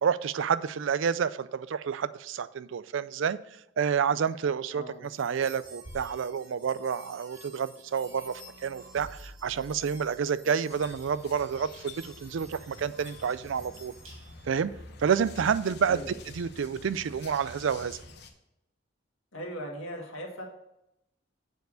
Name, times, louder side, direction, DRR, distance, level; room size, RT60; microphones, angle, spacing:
voice 1, 0.0-3.4 3.8-13.9 14.4-14.7 15.0-16.0 16.3-18.0, right 7 dB, 75° right, 15 dB, 0.4 m, -29 dB
sound 1, 5.0-14.6, right 1 dB, 90° right, 2.6 m, -52 dB
sound 2, 7.8-10.5 11.4-12.4, right 1 dB, 45° right, 0.8 m, -52 dB
sound 3, 10.7-18.3, left 2 dB, 55° left, 1.0 m, -48 dB
voice 2, 19.3-20.4, equal, 80° left, 1 dB, 1.9 m, -39 dB
8.0 x 4.6 x 6.3 m, 0.84 s
head